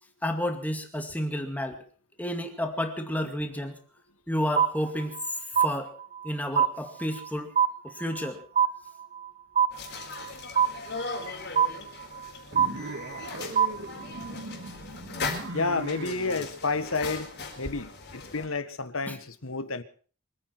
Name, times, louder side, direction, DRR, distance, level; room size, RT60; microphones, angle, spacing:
voice 1, 0.2-1.8 2.2-3.8 4.3-5.2 5.5-5.9 6.2-7.5 7.8-8.4 19.1-19.2, equal, 5° left, 2.2 m, -31 dB
sound 1, 4.6-5.3 5.6-6.3 6.6-7.3 7.6-8.3 8.6-9.3 9.6-10.3 10.6-11.3 11.6-12.3 12.6-13.3 13.6-14.3, right 8 dB, 30° right, 0.9 m, -25 dB
sound 2, 9.7-18.5, left 4 dB, 50° left, 4.4 m, -39 dB
sound 3, 12.5-16.5, right 1 dB, 55° right, 2.7 m, -39 dB
voice 2, 15.5-17.3 17.6-19.8, left 3 dB, 65° left, 1.5 m, -30 dB
25.5 x 9.3 x 6.1 m
head